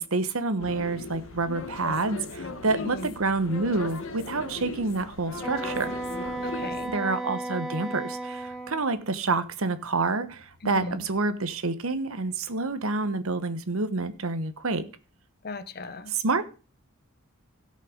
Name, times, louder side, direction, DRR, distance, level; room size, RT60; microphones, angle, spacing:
voice 1, 0.0-5.9 6.9-14.9 16.1-16.4, right 3 dB, 70° right, 1.1 m, -28 dB
sound 1, 0.6-6.9, left 3 dB, 65° left, 1.2 m, -38 dB
voice 2, 2.8-3.1 6.4-6.9 10.6-11.0 15.4-16.1, left 2 dB, 45° left, 0.8 m, -37 dB
Wind instrument woodwind instrument, 5.4-8.8, right 2 dB, 5° left, 1.8 m, -34 dB
16.5 x 5.6 x 5.0 m
head